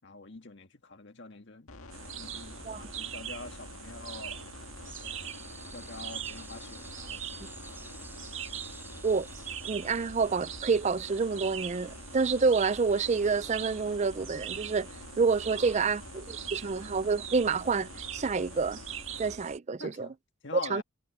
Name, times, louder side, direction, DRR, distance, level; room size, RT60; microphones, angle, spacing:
voice 1, 0.0-4.4 5.0-5.2 5.7-7.8 15.5-15.9 19.8-20.1 20.4-20.8, left 3 dB, 55° left, 1.7 m, -45 dB
sound 1, 1.7-19.4, left 2 dB, 85° left, 1.8 m, -47 dB
sound 2, 1.9-19.6, right 10 dB, 65° right, 1.6 m, -43 dB
sound 3, 4.8-13.4, right 3 dB, 10° right, 6.1 m, -52 dB
voice 2, 9.6-14.9 15.2-18.8 19.2-20.1 20.7-20.8, right 4 dB, 30° right, 0.4 m, -28 dB
head